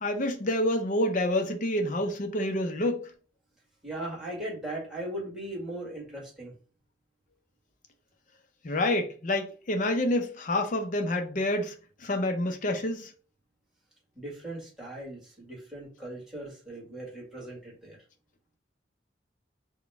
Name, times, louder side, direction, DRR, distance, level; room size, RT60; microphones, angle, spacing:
voice 1, 0.0-3.0 8.6-11.7 12.0-13.1, left 1 dB, 45° left, 0.6 m, -28 dB
voice 2, 3.8-6.5 14.2-18.0, right 1 dB, 5° right, 1.6 m, -38 dB
4.1 x 2.2 x 3.3 m
head